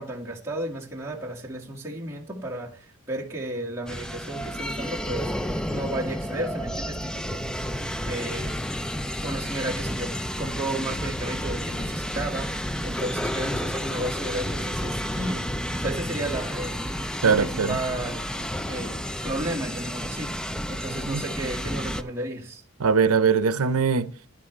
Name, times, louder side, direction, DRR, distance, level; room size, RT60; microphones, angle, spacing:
voice 1, 0.0-7.7 8.0-8.6 9.2-15.4 15.8-22.6, right 1 dB, 10° right, 2.0 m, -33 dB
sound 1, 3.9-22.0, equal, 5° left, 0.4 m, -31 dB
voice 2, 17.2-17.8 21.1-21.2 22.8-24.1, right 5 dB, 85° right, 0.7 m, -21 dB
11.0 x 11.0 x 3.3 m
head